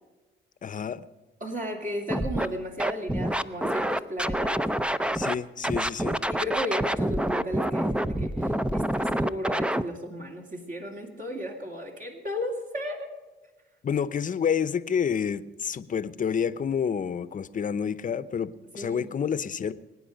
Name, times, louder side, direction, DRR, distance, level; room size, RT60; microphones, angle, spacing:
voice 1, 0.6-1.0 5.1-6.2 13.8-19.7, left 7 dB, 40° left, 15 dB, 0.8 m, -29 dB
voice 2, 1.4-4.7 6.3-13.1 18.8-19.1, equal, 40° right, 1 dB, 2.7 m, -35 dB
Scratching (performance technique), 2.1-2.5 2.8-5.3 5.6-9.8, right 1 dB, 5° right, 0.5 m, -27 dB
23.0 x 9.6 x 5.2 m, 1.2 s
cardioid pair, 90°, 20 cm